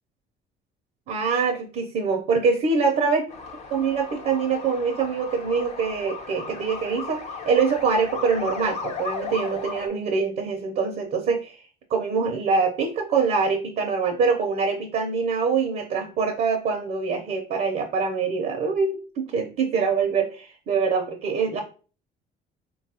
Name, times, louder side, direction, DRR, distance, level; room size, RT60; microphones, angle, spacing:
voice 1, 1.1-3.3 3.7-11.6 11.9-21.6, right 5 dB, 60° right, 3 dB, 0.6 m, -24 dB
sound 1, 3.3-9.9, left 4 dB, 40° left, 0.5 m, -36 dB
3.5 x 2.3 x 2.8 m, 0.37 s
cardioid pair, 110°, 17 cm